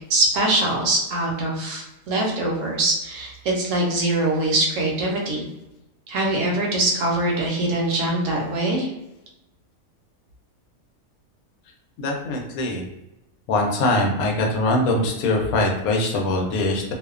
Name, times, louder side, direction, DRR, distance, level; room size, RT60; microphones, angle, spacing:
voice 1, 0.1-5.5 6.1-8.9, right 2 dB, 70° right, -1 dB, 1.0 m, -23 dB
voice 2, 12.0-12.8 13.5-16.8, left 2 dB, 85° left, 1 dB, 1.1 m, -22 dB
2.6 x 2.1 x 2.3 m, 0.93 s
omnidirectional pair, 1.5 m